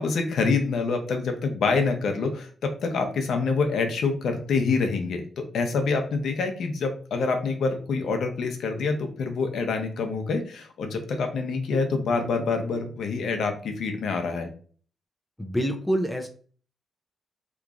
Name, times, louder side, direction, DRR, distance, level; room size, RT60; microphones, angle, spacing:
voice 1, 0.0-14.5, left 4 dB, 75° left, 5 dB, 0.6 m, -26 dB
voice 2, 15.4-16.3, equal, 5° left, 4 dB, 0.4 m, -26 dB
3.0 x 2.4 x 3.5 m, 0.43 s
wide cardioid pair, 130°, 0 cm